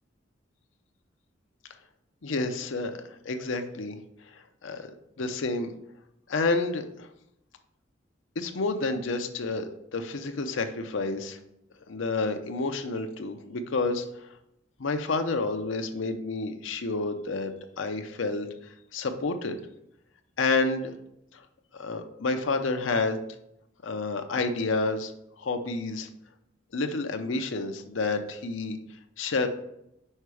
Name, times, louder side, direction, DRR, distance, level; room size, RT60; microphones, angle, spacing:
voice 1, 2.2-3.0 3.2-4.0 4.3-4.9 5.2-5.7 6.3-7.1 8.4-11.4 11.9-14.3 14.8-19.6 20.4-21.0 21.3-21.4 21.7-23.2 23.8-25.1 25.4-26.1 26.7-28.8 29.2-29.5, left 3 dB, 80° left, 6 dB, 0.7 m, -29 dB
5.5 x 4.6 x 4.8 m, 0.80 s
head